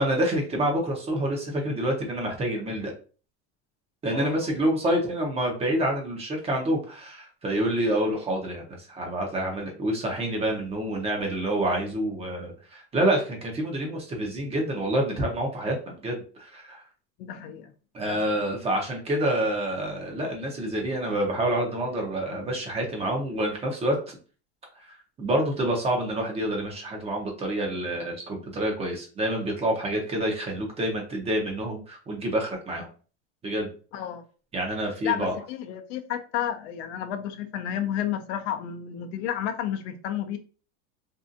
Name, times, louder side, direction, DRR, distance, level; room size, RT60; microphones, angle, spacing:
voice 1, 0.0-2.9 4.0-16.8 17.9-24.2 24.8-32.9 33.4-33.7 34.5-35.3, right 1 dB, 20° right, 1 dB, 0.6 m, -27 dB
voice 2, 4.1-4.5 17.2-17.7 18.0-18.2 33.9-34.2 35.0-40.4, left 10 dB, 70° left, 8 dB, 0.5 m, -31 dB
2.6 x 2.3 x 2.5 m, 0.38 s
supercardioid pair, 145°, 34 cm